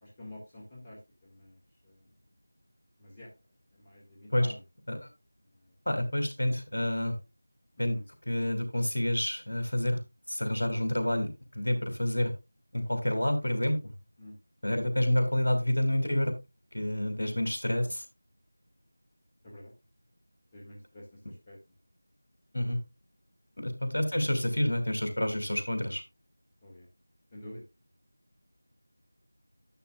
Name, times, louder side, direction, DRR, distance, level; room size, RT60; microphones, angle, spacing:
voice 1, 0.0-2.1 3.0-3.3 3.7-4.6 7.8-8.0 10.7-10.8 14.2-14.3 14.7-14.8 17.8-17.9 19.4-19.7 20.5-21.6 24.1-24.2 26.6-26.9 27.3-27.6, left 1 dB, 15° left, -3 dB, 2.0 m, -48 dB
voice 2, 5.9-7.1 7.8-8.0 8.3-10.0 10.3-12.3 12.7-13.8 14.6-16.3 16.7-18.0 22.5-22.8 23.6-26.0, left 1 dB, 60° left, 6 dB, 2.8 m, -28 dB
11.5 x 7.9 x 2.4 m, 0.24 s
figure-of-eight pair, 170°, 0 cm